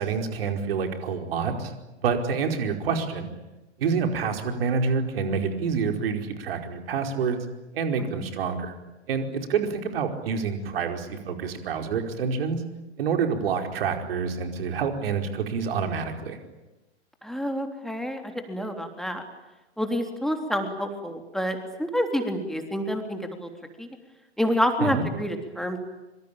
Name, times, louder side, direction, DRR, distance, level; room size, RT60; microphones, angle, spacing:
voice 1, 0.0-1.7 2.0-3.3 3.8-7.4 7.7-8.7 9.1-12.6 13.0-16.4 24.8-25.0, right 5 dB, 55° right, 5 dB, 4.9 m, -27 dB
voice 2, 17.2-19.2 19.8-23.5 23.8-23.9 24.4-25.8, equal, ahead, 5 dB, 3.4 m, -28 dB
26.0 x 25.0 x 9.0 m, 1.0 s
figure-of-eight pair, 105°, 34 cm